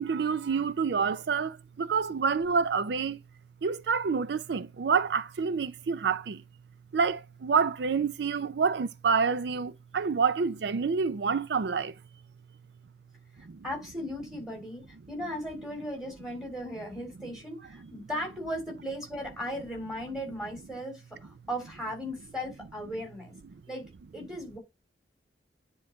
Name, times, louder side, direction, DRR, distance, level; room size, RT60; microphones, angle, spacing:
voice 1, 0.0-3.2 3.6-6.4 6.9-11.9 13.5-13.6, right 5 dB, 75° right, 0.4 m, -28 dB
voice 2, 13.4-23.4 23.7-23.9 24.1-24.6, equal, 5° right, 3.3 m, -37 dB
9.7 x 3.9 x 3.8 m
head